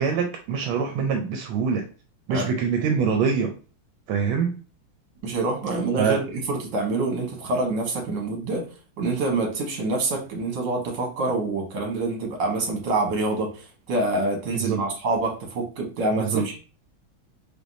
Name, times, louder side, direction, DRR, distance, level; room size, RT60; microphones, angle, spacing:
voice 1, 0.0-1.9 2.3-3.5 4.1-4.6 6.0-6.2 14.5-14.8 16.1-16.4, right 6 dB, 85° right, 4 dB, 1.4 m, -24 dB
voice 2, 5.2-8.7 9.0-16.6, right 2 dB, 65° right, 1 dB, 1.8 m, -26 dB
4.4 x 3.4 x 2.6 m, 0.36 s
omnidirectional pair, 2.2 m